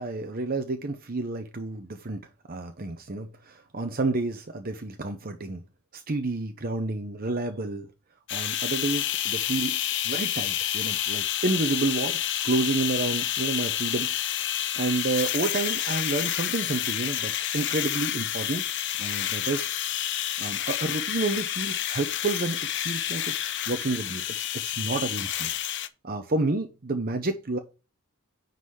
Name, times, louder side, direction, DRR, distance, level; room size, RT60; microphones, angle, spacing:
voice 1, 0.0-2.2 2.5-5.6 5.9-7.9 8.3-9.8 10.0-18.6 19.0-19.7 20.4-25.5 26.0-27.6, right 2 dB, 40° right, 7 dB, 0.8 m, -30 dB
sound 1, 8.3-25.9, left 11 dB, 55° left, 0.7 m, -29 dB
9.7 x 4.1 x 4.8 m, 0.30 s
head